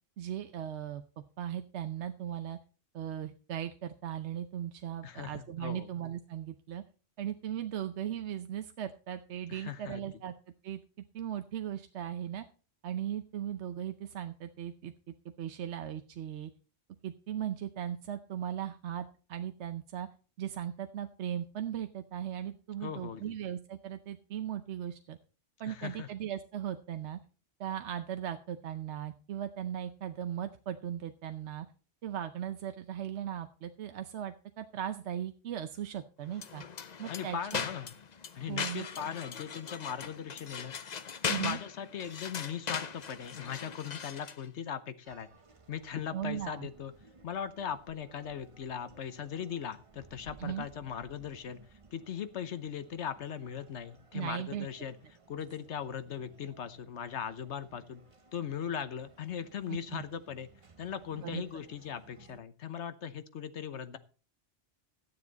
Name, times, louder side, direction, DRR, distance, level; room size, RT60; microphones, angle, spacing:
voice 1, 0.2-2.6 2.9-6.8 7.2-10.3 10.6-10.8 11.1-12.5 12.8-14.9 15.4-16.5 17.0-20.1 20.4-25.2 25.6-27.2 27.6-31.7 32.0-36.6 37.0-37.6 38.5-39.1 41.3-41.6 46.1-46.7 50.4-50.7 54.1-54.7 59.7-60.0 61.2-61.4, right 10 dB, 80° right, 8 dB, 1.0 m, -38 dB
voice 2, 5.0-5.9 9.5-10.0 22.8-23.3 25.6-26.1 37.1-37.9 38.3-40.7 41.2-45.3 45.7-46.9 47.2-51.6 51.9-55.0 55.3-58.0 58.3-60.5 60.8-64.0, left 8 dB, 85° left, 12 dB, 1.2 m, -39 dB
sound 1, 36.3-44.5, left 6 dB, 45° left, 0.7 m, -39 dB
sound 2, 45.0-62.4, right 4 dB, 30° right, 0.9 m, -60 dB
13.0 x 9.7 x 4.0 m, 0.36 s
omnidirectional pair, 1.1 m